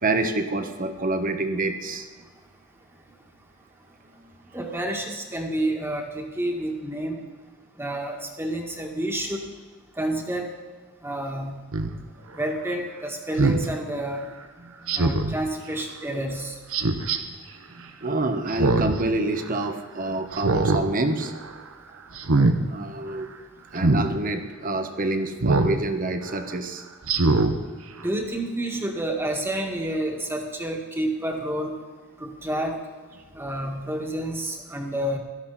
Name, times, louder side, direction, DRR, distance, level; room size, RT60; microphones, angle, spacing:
voice 1, 0.0-2.1 4.2-4.3 14.6-15.0 17.2-17.4 17.7-21.3 21.9-22.0 22.6-23.3 23.7-26.8, right 2 dB, 40° right, 7 dB, 1.3 m, -27 dB
voice 2, 4.5-7.2 7.8-9.4 10.0-10.5 11.0-11.6 12.4-14.2 15.0-16.5 28.0-31.7 32.2-32.8 33.4-35.2, right 1 dB, 10° right, 1 dB, 1.9 m, -29 dB
Speech synthesizer, 11.7-11.9 13.4-13.6 14.9-15.4 16.7-17.2 18.5-19.0 19.4-19.5 20.3-20.8 21.2-21.5 22.1-22.6 23.8-24.1 25.4-25.8 26.2-26.3 27.0-27.5 28.0-28.1, right 3 dB, 85° right, 1.1 m, -22 dB
17.0 x 13.0 x 4.2 m, 1.4 s
head